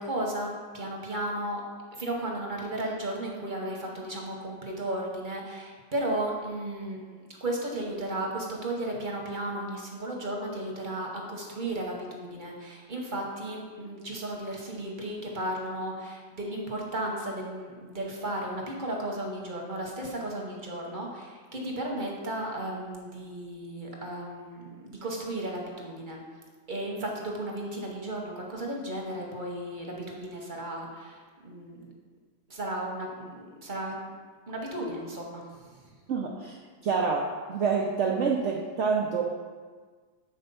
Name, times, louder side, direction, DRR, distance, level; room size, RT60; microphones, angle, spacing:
voice 1, 0.0-1.6 1.9-26.2 26.7-31.9 32.5-34.0 34.5-35.8, right 1 dB, 35° right, -1 dB, 0.8 m, -34 dB
voice 2, 36.1-36.6 36.8-39.2, right 5 dB, 85° right, 0 dB, 0.6 m, -27 dB
7.9 x 4.2 x 5.4 m, 1.5 s
omnidirectional pair, 2.0 m